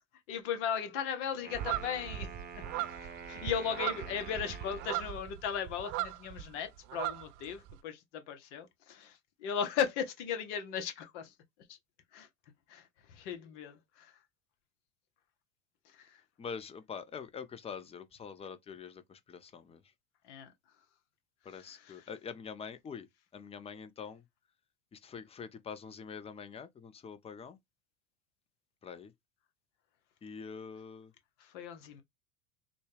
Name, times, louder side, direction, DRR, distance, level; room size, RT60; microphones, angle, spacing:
voice 1, 0.3-2.3 2.6-2.7 3.0-11.3 11.7-11.8 12.1-12.3 12.7-14.1 15.9-16.2 20.2-20.5 21.5-22.1 31.4-32.0, left 8 dB, 65° left, 1.1 m, -37 dB
Wind instrument woodwind instrument, 1.3-5.3, right 5 dB, 25° right, 1.0 m, -48 dB
sound 1, 1.5-6.5 6.8-7.8, right 14 dB, 50° right, 0.5 m, -38 dB
voice 2, 16.4-19.8 21.4-23.1 23.3-24.2 24.9-27.6 28.8-29.1 30.2-31.1, left 6 dB, 15° left, 0.5 m, -45 dB
4.0 x 2.3 x 3.3 m
hypercardioid pair, 85°, 38 cm